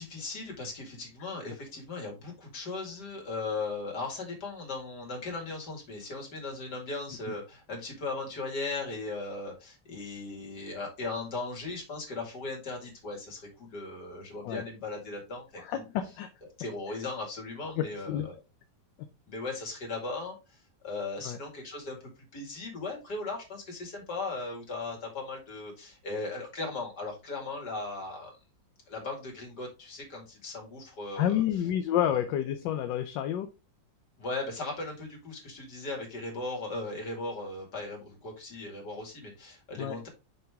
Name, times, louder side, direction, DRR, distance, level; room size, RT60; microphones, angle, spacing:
voice 1, 0.0-15.8 16.6-18.4 19.3-20.4 20.8-22.0 22.3-28.3 28.9-31.4 34.2-40.1, left 3 dB, 60° left, 2.7 m, -37 dB
voice 2, 15.6-16.3 16.9-17.0 17.8-18.3 21.2-21.4 31.2-33.5 39.8-40.0, left 11 dB, 75° left, 1.3 m, -29 dB
5.9 x 5.4 x 3.5 m
omnidirectional pair, 2.0 m